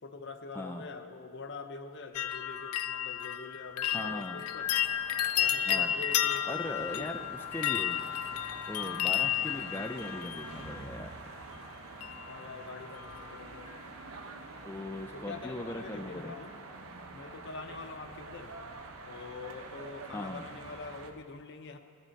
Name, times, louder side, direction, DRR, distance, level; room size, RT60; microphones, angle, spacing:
voice 1, 0.0-4.7 5.3-7.2 12.3-13.7 15.1-16.6 17.1-18.5 19.0-21.8, left 4 dB, 55° left, 7 dB, 0.8 m, -44 dB
voice 2, 0.5-0.9 3.9-4.4 5.7-6.0 6.5-8.0 8.7-11.2 14.7-16.3 20.1-20.4, left 1 dB, 10° left, 4 dB, 0.4 m, -39 dB
sound 1, 2.1-11.1 12.0-12.5 12.8-13.4 13.7-13.8, left 11 dB, 80° left, 0.4 m, -32 dB
sound 2, 4.6-21.1, right 3 dB, 70° right, 0.9 m, -47 dB
16.5 x 11.5 x 4.5 m, 2.2 s
head